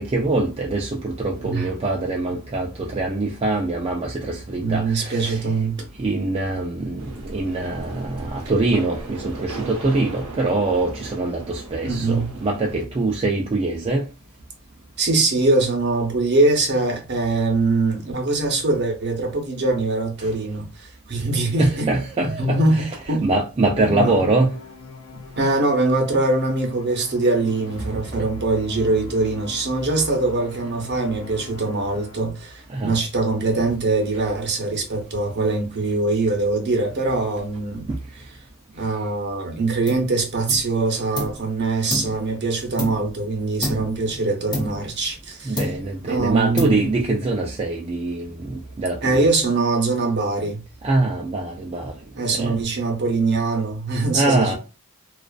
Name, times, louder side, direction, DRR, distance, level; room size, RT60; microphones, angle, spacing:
voice 1, 0.0-5.5 6.0-14.1 20.2-20.3 21.6-22.6 23.2-24.5 27.9-28.3 32.7-32.9 37.9-38.0 43.8-43.9 45.5-49.3 50.8-51.9 52.3-52.6 54.1-54.5, right 2 dB, 25° right, 0.4 m, -23 dB
voice 2, 4.6-5.8 11.8-12.3 15.0-21.9 22.2-23.2 23.8-24.2 25.4-37.9 38.7-45.7 46.0-46.8 49.0-50.6 52.1-54.6, right 3 dB, 55° right, 0.7 m, -22 dB
sound 1, 7.0-12.8, right 3 dB, 85° right, 0.7 m, -37 dB
Musical instrument, 24.0-32.5, left 4 dB, 65° left, 0.4 m, -40 dB
sound 2, 39.9-40.1 40.5-41.5 41.9-43.2 43.6-44.0 44.5-45.3 45.6-46.1 46.6-47.1, left 1 dB, 20° left, 0.6 m, -30 dB
2.3 x 2.3 x 2.3 m
head